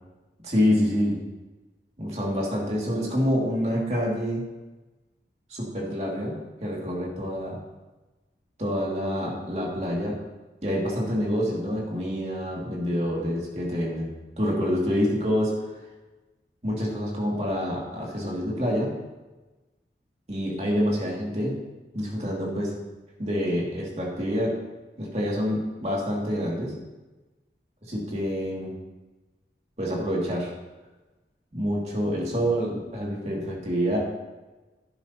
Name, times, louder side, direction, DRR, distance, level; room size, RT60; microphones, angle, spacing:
voice 1, 0.4-1.1 2.0-4.5 5.5-6.4 6.6-7.6 8.6-10.2 10.6-14.1 14.4-15.6 16.6-18.9 20.3-21.5 21.9-22.7 23.2-24.6 25.0-26.7 27.9-28.7 29.8-30.5 31.5-34.0, equal, 35° right, -4 dB, 2.5 m, -27 dB
11.5 x 11.0 x 3.0 m, 1.1 s
head